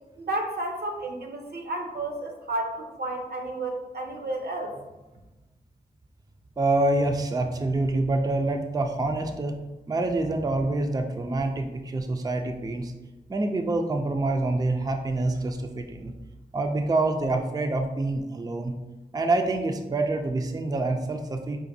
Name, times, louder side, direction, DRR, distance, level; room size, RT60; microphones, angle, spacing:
voice 1, 0.2-4.8, right 2 dB, 75° right, 3 dB, 0.6 m, -32 dB
voice 2, 6.6-9.6 9.9-12.9 13.3-16.1 16.5-18.7 19.1-21.6, right 2 dB, 25° right, 4 dB, 0.3 m, -26 dB
4.9 x 2.5 x 2.6 m, 1.1 s
wide cardioid pair, 75°, 16 cm